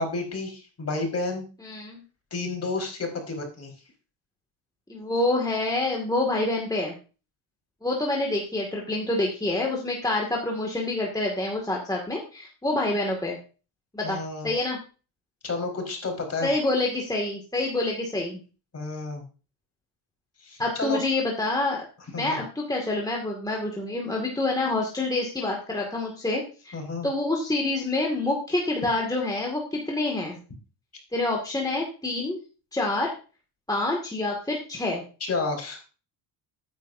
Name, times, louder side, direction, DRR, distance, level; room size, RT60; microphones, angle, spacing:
voice 1, 0.0-1.5 2.3-3.7 14.0-14.5 15.4-16.5 18.7-19.2 20.4-21.0 22.1-22.4 26.7-27.1 35.2-35.8, left 3 dB, 30° left, 2 dB, 4.7 m, -31 dB
voice 2, 1.6-2.0 4.9-6.9 7.8-13.4 13.9-14.2 14.4-14.8 16.4-18.4 20.6-21.8 22.1-26.8 27.0-30.4 31.1-32.4 32.7-33.1 33.7-35.0, left 2 dB, 10° left, -1 dB, 2.2 m, -27 dB
13.5 x 9.7 x 2.7 m, 0.35 s
cardioid pair, 110°, 47 cm